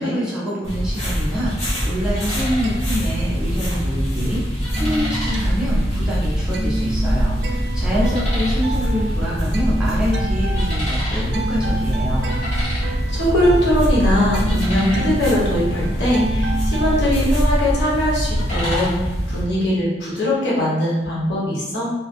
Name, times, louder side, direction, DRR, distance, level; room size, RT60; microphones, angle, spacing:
voice 1, 0.0-12.3, equal, 5° right, -8 dB, 0.6 m, -26 dB
sound 1, 0.6-19.4, equal, 40° left, 0.9 m, -22 dB
sound 2, 2.6-3.9 4.2-17.0, right 2 dB, 65° right, 0.4 m, -31 dB
voice 2, 12.7-21.9, left 1 dB, 80° left, -6 dB, 0.8 m, -21 dB
2.4 x 2.3 x 2.5 m, 1.1 s
head